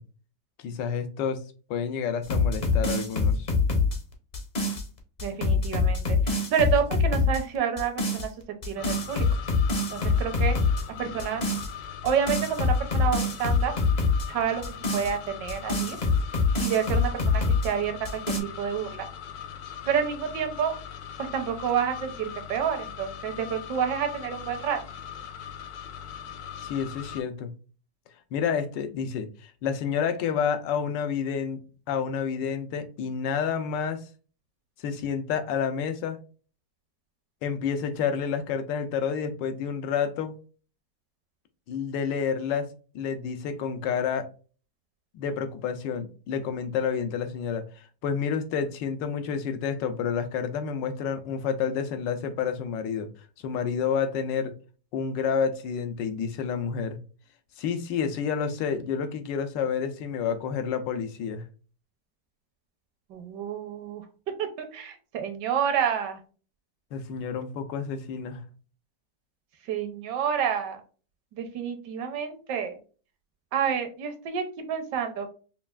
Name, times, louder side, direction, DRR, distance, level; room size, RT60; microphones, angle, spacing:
voice 1, 0.6-1.4 1.7-3.5 26.6-27.5 28.3-31.6 31.9-34.0 34.8-36.2 37.4-40.4 41.7-42.7 42.9-44.3 45.1-53.1 53.4-54.5 54.9-57.0 57.6-61.4 66.9-68.4, left 7 dB, 85° left, 9 dB, 1.3 m, -29 dB
sound 1, 2.2-4.8 5.2-7.4 7.8-8.3 8.6-10.8 11.2-11.7 12.1-14.3 14.6-17.7 18.1-18.4, left 4 dB, 40° left, 0.6 m, -25 dB
voice 2, 5.2-8.3 8.6-9.2 9.9-10.6 11.0-11.4 12.0-13.7 14.3-14.6 14.9-16.0 16.6-19.1 19.9-20.7 21.3-24.8 63.1-64.0 64.4-66.2 69.7-70.8 71.3-72.8 73.5-75.3, right 7 dB, 75° right, 7 dB, 1.4 m, -29 dB
sound 2, 8.8-27.2, left 9 dB, 65° left, 1.1 m, -40 dB
5.4 x 2.4 x 2.3 m, 0.37 s
omnidirectional pair, 1.9 m